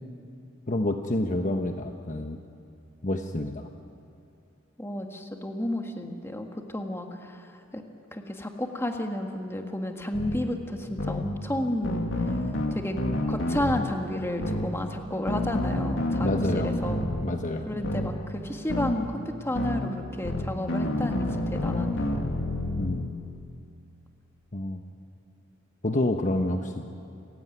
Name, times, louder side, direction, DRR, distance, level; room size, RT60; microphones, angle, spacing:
voice 1, 0.7-2.4 3.0-3.7 16.2-16.7 17.2-17.7 22.8-23.1 24.5-24.8 25.8-26.9, left 1 dB, 40° left, 5 dB, 1.1 m, -28 dB
voice 2, 4.8-7.8 8.1-12.0 12.7-13.0 13.3-17.0 17.7-22.1, left 1 dB, 10° left, 3 dB, 1.9 m, -32 dB
sound 1, 10.1-10.4 11.0-11.2 11.8-13.8 14.4-14.7 15.3-17.2 17.8-18.1 18.7-19.0 19.6-19.8 20.2-23.0, left 1 dB, 70° left, 2.5 m, -28 dB
29.0 x 16.0 x 9.4 m, 2.5 s
head